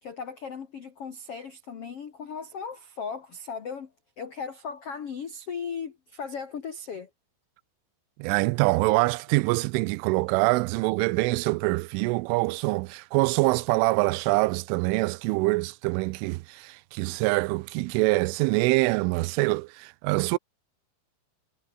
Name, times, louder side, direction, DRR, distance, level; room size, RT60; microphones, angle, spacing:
voice 1, 0.0-7.1, left 6 dB, 75° left, 1.3 m, -37 dB
voice 2, 8.2-20.4, right 23 dB, 90° right, 3.1 m, -25 dB
omnidirectional pair, 5.6 m